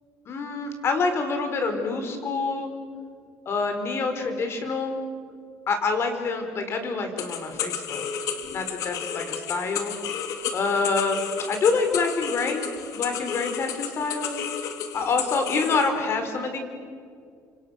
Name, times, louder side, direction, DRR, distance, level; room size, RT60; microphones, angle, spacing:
voice 1, 0.3-2.7 3.5-5.0 5.7-8.1 8.5-9.9 10.5-12.6 12.9-14.3 14.9-16.6, left 4 dB, 45° left, 6 dB, 4.6 m, -26 dB
sound 1, 7.2-15.9, left 8 dB, 70° left, 2.3 m, -33 dB
30.0 x 25.5 x 6.5 m, 2.2 s
cardioid pair, 115°, 6 cm